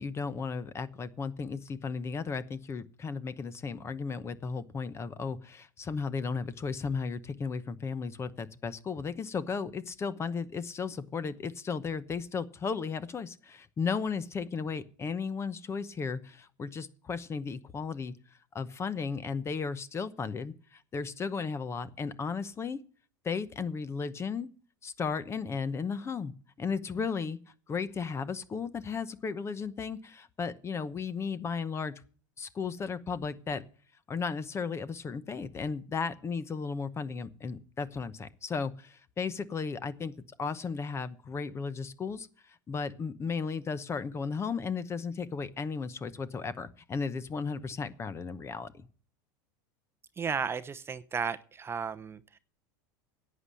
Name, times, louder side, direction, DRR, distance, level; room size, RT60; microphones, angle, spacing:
voice 1, 0.0-18.1 18.5-22.8 23.2-24.5 24.8-26.3 26.6-27.4 27.7-31.9 32.4-33.6 34.1-40.1 40.4-48.9, left 5 dB, 25° left, 16 dB, 0.9 m, -35 dB
voice 2, 50.2-52.4, right 6 dB, 20° right, 12 dB, 0.7 m, -34 dB
11.0 x 8.5 x 7.6 m, 0.42 s
hypercardioid pair, 105°, 11 cm